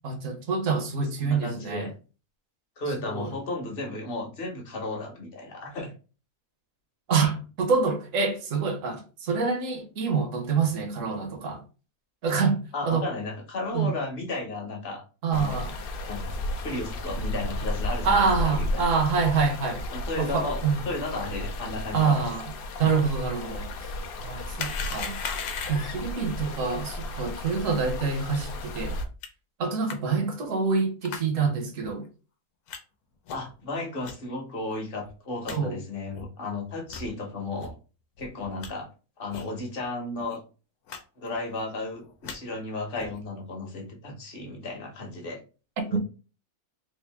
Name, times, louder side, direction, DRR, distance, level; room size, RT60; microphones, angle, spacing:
voice 1, 0.0-1.9 3.1-3.3 7.1-11.6 12.2-13.1 13.7-13.9 15.2-15.7 18.0-19.9 20.2-20.8 21.9-22.5 22.8-23.7 24.2-25.2 25.7-29.0 29.6-32.1 35.5-35.8 45.9-46.0, right 5 dB, 65° right, 1.1 m, -26 dB
voice 2, 1.2-1.9 2.8-5.9 12.7-15.0 15.3-15.6 16.1-19.0 19.9-22.2 33.3-37.7 38.2-38.9 39.2-40.4 41.2-45.4 45.9-46.0, left 2 dB, 45° left, 0.9 m, -34 dB
sound 1, 15.3-29.1, left 1 dB, 70° left, 0.5 m, -34 dB
sound 2, 24.6-26.0 29.2-29.3 29.9-30.0 31.0-31.3 31.8-31.9 32.7-32.8 33.3-33.5 34.0-34.1 34.7-34.8 35.1-35.2 35.4-35.6 36.1-36.3 36.8-37.1 37.6-37.7 38.2-38.7 39.3-39.5 39.8-39.9 40.2-40.4 40.9-41.0 41.3-41.6 42.0-42.4 43.0-43.2, left 6 dB, 90° left, 1.2 m, -37 dB
3.5 x 2.5 x 3.3 m
omnidirectional pair, 1.5 m